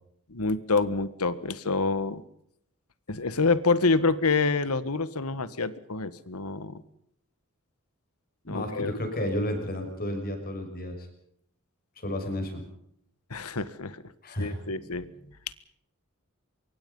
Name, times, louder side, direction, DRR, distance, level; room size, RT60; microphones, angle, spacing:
voice 1, 0.3-2.2 3.1-6.8 8.5-8.9 13.3-14.0 14.4-15.0, left 3 dB, 85° left, 15 dB, 1.5 m, -27 dB
voice 2, 8.4-11.1 12.0-12.6 14.2-14.9, left 1 dB, 45° left, 5 dB, 6.3 m, -32 dB
25.0 x 23.0 x 5.5 m, 0.73 s
head